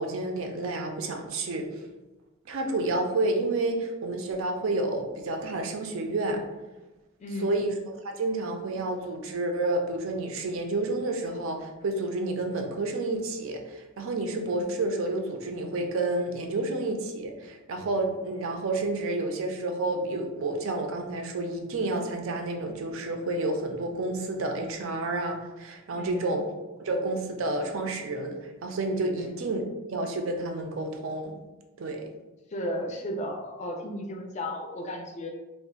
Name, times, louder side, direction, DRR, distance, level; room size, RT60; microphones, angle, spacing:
voice 1, 0.0-1.7 2.5-6.4 7.4-7.7 8.0-26.4 26.8-29.6 29.9-31.4 31.8-32.1, right 2 dB, 70° right, 3 dB, 0.4 m, -30 dB
voice 2, 7.2-7.5 25.9-26.4 29.2-29.3 32.5-35.3, left 1 dB, 35° left, 2 dB, 0.4 m, -34 dB
2.4 x 2.0 x 3.6 m, 1.1 s
head